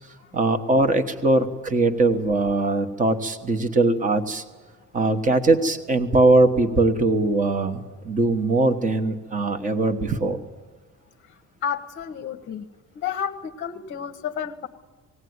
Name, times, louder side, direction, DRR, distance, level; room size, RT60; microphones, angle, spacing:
voice 1, 0.3-4.4 4.9-10.4, right 2 dB, 25° right, 9 dB, 1.2 m, -21 dB
voice 2, 11.6-12.7 12.9-14.7, left 8 dB, 35° left, 6 dB, 0.9 m, -31 dB
19.5 x 17.0 x 9.5 m, 1.4 s
cardioid pair, 175°, 32 cm